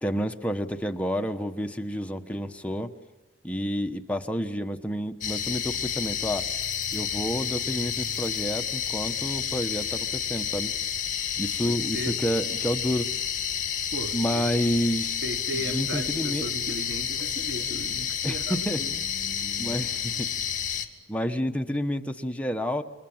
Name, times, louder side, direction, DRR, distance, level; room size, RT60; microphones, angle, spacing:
voice 1, 0.0-2.9 3.4-6.5 6.9-10.7 11.4-13.1 14.1-15.2 15.7-16.4 18.2-19.0 19.6-20.3 21.1-22.8, equal, 10° left, 1.2 m, -29 dB
sound 1, 5.2-20.9, left 8 dB, 45° left, 2.3 m, -30 dB
voice 2, 11.6-12.2 13.9-18.9, right 1 dB, 75° right, 1.4 m, -37 dB
29.0 x 25.5 x 7.3 m
head